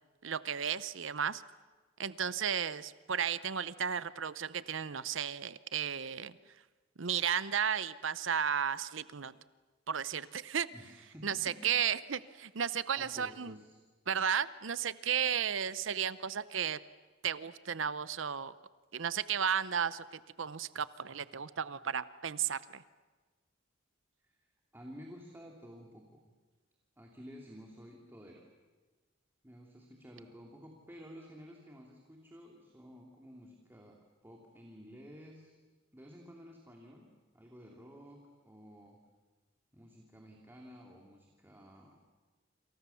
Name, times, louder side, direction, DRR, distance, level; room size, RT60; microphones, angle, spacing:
voice 1, 0.2-1.4 2.0-6.3 7.0-9.3 9.9-10.7 11.2-13.6 14.1-16.8 17.2-18.5 18.9-22.8, right 8 dB, 70° right, 16 dB, 0.8 m, -34 dB
voice 2, 10.7-11.7 12.2-12.5 12.9-13.8 24.2-26.3 27.0-28.5 29.4-34.0 34.2-35.5 35.9-37.1 37.3-39.0 39.7-42.0, equal, 10° right, 0 dB, 2.7 m, -52 dB
28.5 x 27.0 x 7.0 m, 1.3 s
head